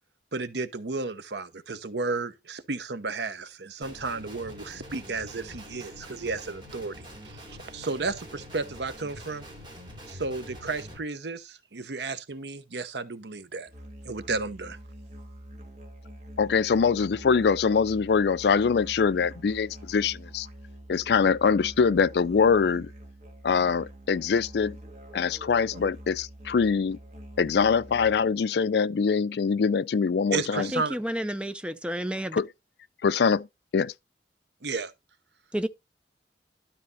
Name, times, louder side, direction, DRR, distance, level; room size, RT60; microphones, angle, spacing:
voice 1, 0.3-9.5 10.1-13.7 14.0-14.8 30.3-31.0 34.6-34.9, right 3 dB, 70° right, 0.9 m, -33 dB
Guitar, 3.8-11.0, equal, 25° right, 3.0 m, -45 dB
Musical instrument, 13.7-28.4, right 1 dB, 40° right, 1.7 m, -45 dB
voice 2, 16.4-20.5 20.9-22.9 23.4-24.8 25.1-27.0 27.4-30.7 32.3-32.5 33.0-33.5 33.7-33.9, left 5 dB, 65° left, 0.4 m, -23 dB
voice 3, 30.7-32.4 35.5-35.7, equal, 5° right, 0.5 m, -30 dB
12.0 x 4.1 x 4.0 m
head